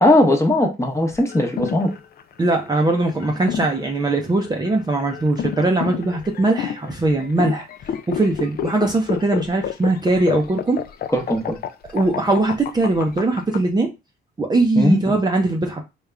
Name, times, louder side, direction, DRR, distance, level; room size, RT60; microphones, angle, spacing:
voice 1, 0.0-1.9 11.1-11.6 14.8-15.0, left 1 dB, 15° left, 1.0 m, -18 dB
sound 1, 1.1-13.6, left 9 dB, 50° left, 0.4 m, -30 dB
voice 2, 2.4-7.7 8.1-10.8 11.9-13.9 14.4-15.8, right 2 dB, 20° right, 0.6 m, -20 dB
3.5 x 2.4 x 3.3 m
cardioid pair, 90°, 20 cm